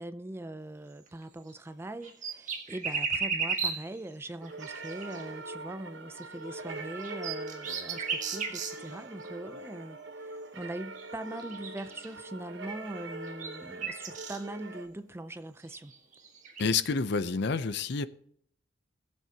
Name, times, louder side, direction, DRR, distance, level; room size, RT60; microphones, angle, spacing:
voice 1, 0.0-15.9, right 1 dB, 10° right, 0.4 m, -41 dB
sound 1, 1.1-1.2 1.5-1.6 2.0-4.0 4.5-5.2 6.2-6.3 6.8-8.9 9.2-9.3 11.0-11.1 11.4-12.1 13.0-14.4 15.6-16.7, right 5 dB, 40° right, 1.5 m, -35 dB
sound 2, 4.4-14.9, right 2 dB, 65° right, 1.2 m, -43 dB
voice 2, 16.6-18.1, left 4 dB, 60° left, 0.6 m, -28 dB
20.0 x 7.6 x 2.8 m
head